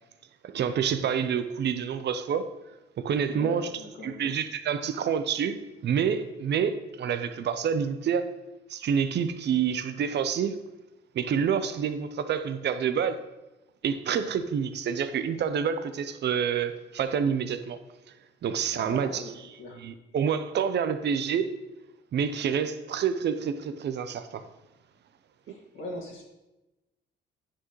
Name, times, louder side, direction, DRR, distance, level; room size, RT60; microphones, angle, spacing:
voice 1, 0.4-2.5 3.0-5.6 5.8-8.3 8.7-10.5 11.1-13.2 13.8-17.8 18.4-19.2 19.7-21.5 22.1-24.4, right 7 dB, 60° right, 0.7 m, -28 dB
voice 2, 3.3-4.3 18.7-19.3 19.6-19.8 25.5-26.2, left 2 dB, 80° left, 2.1 m, -40 dB
9.7 x 6.3 x 3.1 m
cardioid pair, 90°, 20 cm